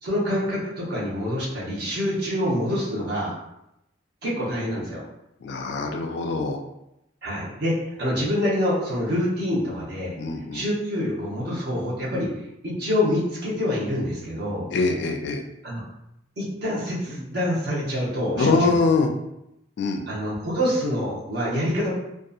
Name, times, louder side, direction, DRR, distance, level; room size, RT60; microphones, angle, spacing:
voice 1, 0.0-3.4 4.2-5.0 7.2-10.1 10.5-12.3 12.6-14.7 15.6-15.8 16.4-18.8 20.1-21.9, left 1 dB, 55° right, -5 dB, 0.8 m, -26 dB
voice 2, 5.4-6.6 10.2-10.6 14.7-15.4 18.4-19.1 19.8-20.0, left 3 dB, 60° left, 3 dB, 0.3 m, -23 dB
2.6 x 2.3 x 2.4 m, 0.85 s
head